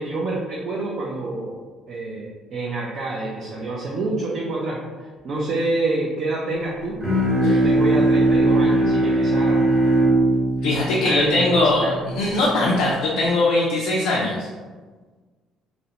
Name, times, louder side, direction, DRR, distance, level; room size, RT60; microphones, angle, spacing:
voice 1, 0.0-1.6 1.9-4.8 5.2-7.0 7.4-9.6 11.0-12.0, right 2 dB, 50° right, -4 dB, 0.4 m, -27 dB
Bowed string instrument, 7.0-12.4, right 2 dB, 25° right, 0.7 m, -20 dB
voice 2, 10.6-14.5, left 2 dB, 85° left, -4 dB, 0.4 m, -21 dB
2.5 x 2.0 x 2.8 m, 1.4 s
cardioid pair, 130°, 0 cm